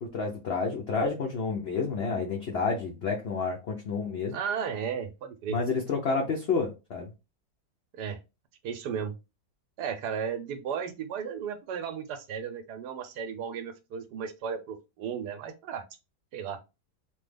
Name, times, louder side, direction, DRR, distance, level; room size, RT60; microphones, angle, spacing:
voice 1, 0.0-4.4 5.5-7.1, left 4 dB, 80° left, 0.5 m, -30 dB
voice 2, 4.3-5.6 7.9-8.2 8.6-9.1 9.8-15.8 16.3-16.6, right 7 dB, 75° right, 1.1 m, -34 dB
3.1 x 2.3 x 3.3 m
omnidirectional pair, 1.9 m